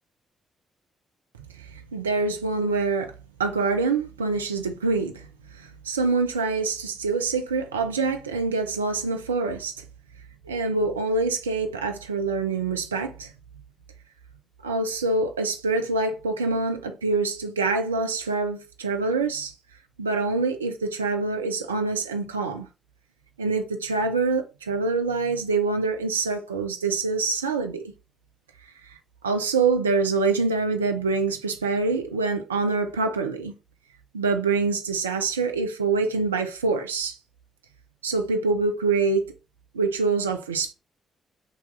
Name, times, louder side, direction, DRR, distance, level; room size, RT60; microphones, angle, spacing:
voice 1, 1.6-3.1 3.4-5.3 5.6-9.8 10.5-13.3 14.6-19.5 20.0-22.7 23.4-27.8 28.9-29.0 29.2-33.5 34.1-37.2 38.0-39.2 39.7-40.7, right 4 dB, 90° right, 0.3 m, -25 dB
3.9 x 2.8 x 4.0 m
figure-of-eight pair, 40°, 0 cm